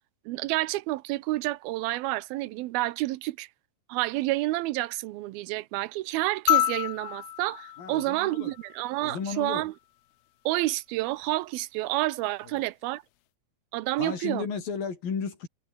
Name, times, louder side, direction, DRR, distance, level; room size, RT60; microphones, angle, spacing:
voice 1, 0.3-3.5 3.9-9.7 10.5-13.0 13.7-14.5, right 18 dB, 85° right, 2.6 m, -29 dB
sound 1, 6.5-9.0 10.6-10.7, left 15 dB, 85° left, 3.0 m, -29 dB
voice 2, 7.8-8.5 9.0-9.7 14.0-15.5, left 6 dB, 65° left, 6.1 m, -33 dB
omnidirectional pair, 4.3 m